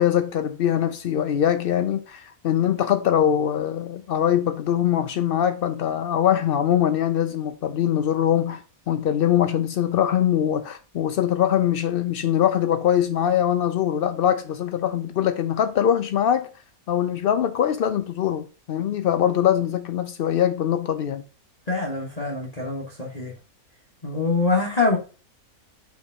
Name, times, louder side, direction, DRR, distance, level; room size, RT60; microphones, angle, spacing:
voice 1, 0.0-16.5 16.9-21.2, left 10 dB, 90° left, 0.4 m, -22 dB
voice 2, 21.7-23.3 24.0-25.0, left 3 dB, 30° left, 1.1 m, -24 dB
5.5 x 3.5 x 5.3 m
omnidirectional pair, 1.5 m